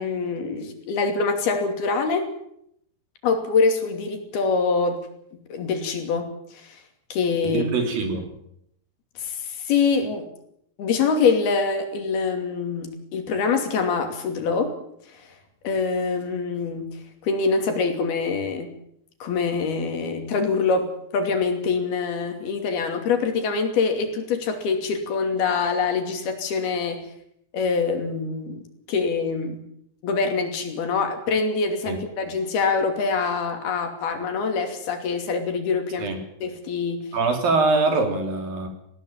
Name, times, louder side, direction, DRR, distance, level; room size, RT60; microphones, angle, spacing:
voice 1, 0.0-2.3 3.2-5.0 5.3-6.8 7.1-7.6 9.2-10.3 10.8-14.8 15.6-17.0 17.2-18.7 19.2-27.0 27.5-28.6 28.9-29.6 30.0-36.1 36.4-37.1, left 4 dB, 70° left, 5 dB, 4.6 m, -24 dB
voice 2, 7.4-8.3 31.9-32.0 36.0-36.2 37.1-38.7, right 3 dB, 60° right, 5 dB, 4.8 m, -23 dB
19.5 x 16.5 x 9.1 m, 0.73 s
omnidirectional pair, 4.6 m